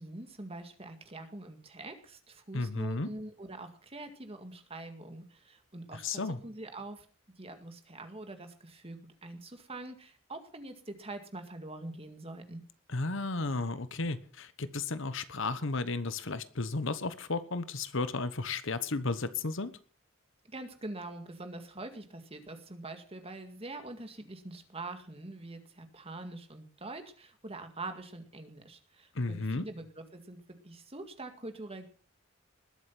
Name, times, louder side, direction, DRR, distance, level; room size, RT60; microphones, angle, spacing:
voice 1, 0.0-7.1 7.4-12.6 20.4-31.9, right 2 dB, 30° right, 7 dB, 2.0 m, -44 dB
voice 2, 2.5-3.1 6.0-6.4 12.9-19.7 29.1-29.6, left 3 dB, 65° left, 13 dB, 1.1 m, -33 dB
20.5 x 8.0 x 5.9 m, 0.41 s
head